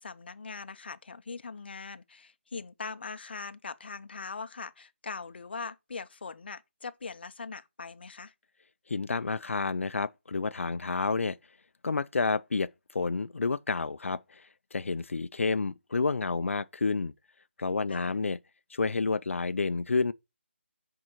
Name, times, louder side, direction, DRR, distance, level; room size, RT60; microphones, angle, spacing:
voice 1, 0.0-8.3 17.9-18.2, left 4 dB, 55° left, 0.7 m, -41 dB
voice 2, 8.9-11.4 11.8-17.1 17.6-18.4 18.7-20.1, left 4 dB, 90° left, 0.4 m, -30 dB
6.2 x 4.7 x 4.4 m
figure-of-eight pair, 170°, 7 cm